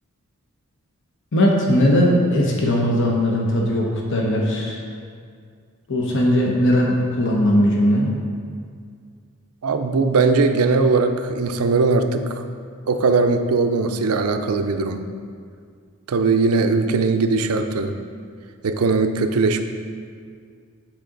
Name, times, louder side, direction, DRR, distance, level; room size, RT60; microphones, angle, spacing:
voice 1, 1.3-4.8 5.9-8.1, equal, 60° left, -1 dB, 0.9 m, -19 dB
voice 2, 9.6-12.4 12.9-15.0 16.1-18.0 18.6-19.6, right 4 dB, 80° right, 7 dB, 0.5 m, -19 dB
9.0 x 4.9 x 3.8 m, 2.1 s
head